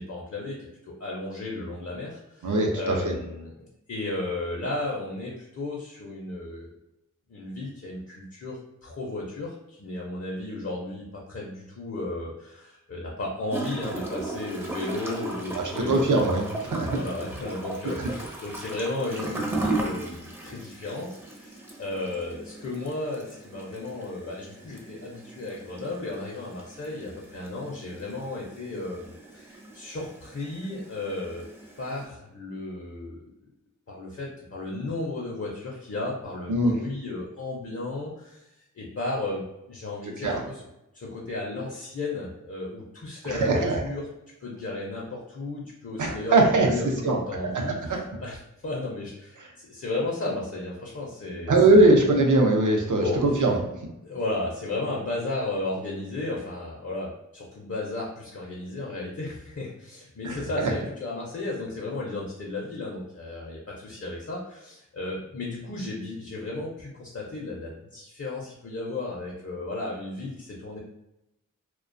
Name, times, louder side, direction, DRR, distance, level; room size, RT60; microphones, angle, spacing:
voice 1, 0.0-6.7 7.3-16.3 16.9-31.5 31.8-33.2 33.9-38.5 38.8-40.6 40.9-44.1 44.4-48.4 48.6-51.9 52.9-53.4 54.0-70.8, left 2 dB, 50° left, -3 dB, 0.6 m, -34 dB
voice 2, 2.4-3.1 15.5-16.9 18.0-18.1 36.5-36.7 40.2-40.4 43.3-43.8 46.0-46.7 47.0-47.2 47.5-48.0 51.5-53.6 60.2-60.7, right 2 dB, 70° right, 2 dB, 0.6 m, -21 dB
Gurgling / Toilet flush, 13.5-32.0, right 2 dB, 5° right, 0.5 m, -37 dB
2.4 x 2.2 x 2.5 m, 0.90 s
wide cardioid pair, 45°, 32 cm